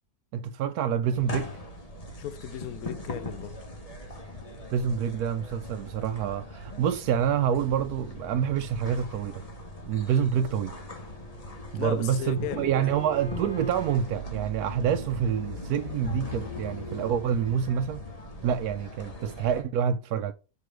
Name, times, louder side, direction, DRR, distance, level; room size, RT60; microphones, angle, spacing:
voice 1, 0.3-1.5 4.7-9.4 9.8-10.7 11.7-18.0 18.4-20.3, right 8 dB, 90° right, 1.1 m, -27 dB
sound 1, 1.1-19.6, left 1 dB, 25° left, 1.5 m, -40 dB
voice 2, 2.2-3.6 10.1-10.3 11.7-12.9, left 12 dB, 80° left, 1.1 m, -36 dB
Bowed string instrument, 10.9-14.1, right 3 dB, 55° left, 2.5 m, -45 dB
5.2 x 4.8 x 6.1 m
omnidirectional pair, 1.6 m